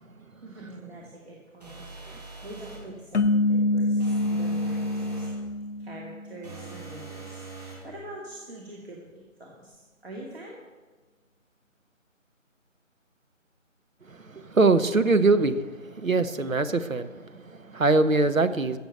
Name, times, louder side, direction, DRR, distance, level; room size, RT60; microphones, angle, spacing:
voice 1, 0.4-5.3 5.8-10.6, right 1 dB, 50° right, 2.5 m, -44 dB
sound 1, 1.6-2.9 4.0-5.4 6.4-7.9, right 3 dB, 30° right, 2.5 m, -41 dB
sound 2, 3.1-6.5, left 2 dB, 55° left, 0.6 m, -26 dB
voice 2, 14.1-18.8, right 3 dB, 75° right, 1.1 m, -23 dB
16.0 x 7.1 x 7.9 m
figure-of-eight pair, 165°, 40 cm